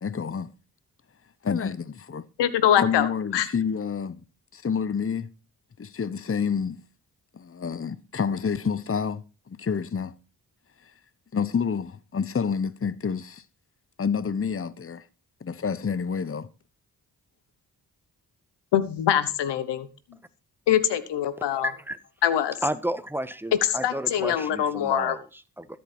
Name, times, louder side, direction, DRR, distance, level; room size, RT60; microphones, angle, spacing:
voice 1, 0.0-0.5 1.4-2.2 2.8-4.2 4.5-5.3 5.8-6.8 7.3-10.1 11.3-13.4 14.0-15.0 15.4-16.5, left 6 dB, 30° left, 0.9 m, -28 dB
voice 2, 2.4-3.5 18.7-19.9 20.7-21.7 22.2-22.6 23.8-25.2, left 10 dB, 85° left, 1.2 m, -23 dB
voice 3, 21.6-22.0 22.6-25.7, right 1 dB, 5° right, 1.4 m, -32 dB
13.5 x 8.6 x 4.4 m
supercardioid pair, 40°, 41 cm